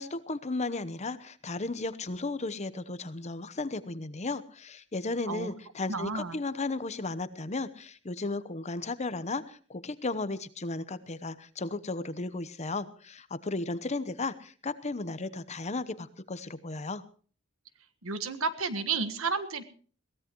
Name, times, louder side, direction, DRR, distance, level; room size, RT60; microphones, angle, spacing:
voice 1, 0.0-17.0, left 3 dB, 35° left, 14 dB, 0.9 m, -35 dB
voice 2, 5.9-6.4 18.0-19.6, right 4 dB, 85° right, 12 dB, 1.5 m, -31 dB
21.5 x 16.5 x 3.1 m, 0.42 s
head